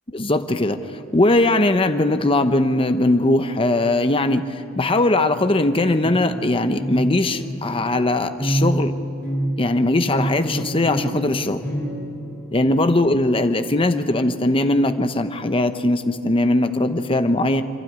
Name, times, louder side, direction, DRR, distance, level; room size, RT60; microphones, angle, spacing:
voice 1, 0.1-0.8 1.1-8.9 9.6-11.6 12.5-17.6, left 2 dB, 25° left, 9 dB, 0.9 m, -20 dB
sound 1, 5.3-13.0, right 1 dB, 5° left, 5.8 m, -28 dB
27.0 x 12.5 x 9.7 m, 2.7 s
head